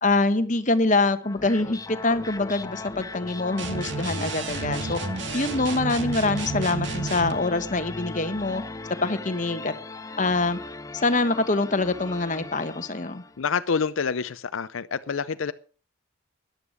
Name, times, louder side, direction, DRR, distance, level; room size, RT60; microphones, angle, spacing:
voice 1, 0.0-5.0 5.3-8.6 9.0-9.7 10.2-10.6 10.9-13.2, left 2 dB, 40° left, 10 dB, 1.2 m, -24 dB
sound 1, 1.2-13.4, left 3 dB, 15° left, 0.6 m, -38 dB
sound 2, 3.6-7.4, right 4 dB, 60° right, 1.9 m, -31 dB
voice 2, 13.4-15.5, left 5 dB, 75° left, 13 dB, 0.5 m, -27 dB
14.0 x 10.5 x 6.3 m, 0.41 s
head